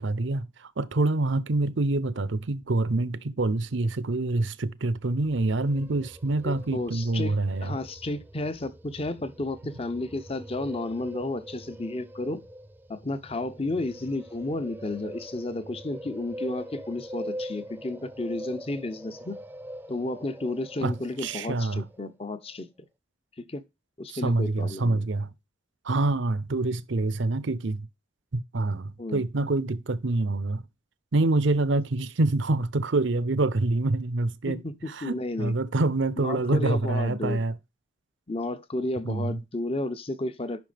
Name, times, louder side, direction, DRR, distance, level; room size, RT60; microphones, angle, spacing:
voice 1, 0.0-7.7 20.8-20.9 21.2-21.8 24.1-25.3 25.8-27.9 28.3-30.6 31.1-34.6 34.9-37.5 39.0-39.4, right 2 dB, 65° right, 0.6 m, -26 dB
sound 1, 5.1-22.1, equal, 10° right, 0.3 m, -43 dB
voice 2, 6.4-12.4 12.9-19.4 19.9-22.7 23.5-23.6 24.0-25.1 29.0-29.2 34.5-35.5 36.2-37.4 38.3-40.7, left 2 dB, 30° left, 0.7 m, -32 dB
9.3 x 5.7 x 3.4 m
head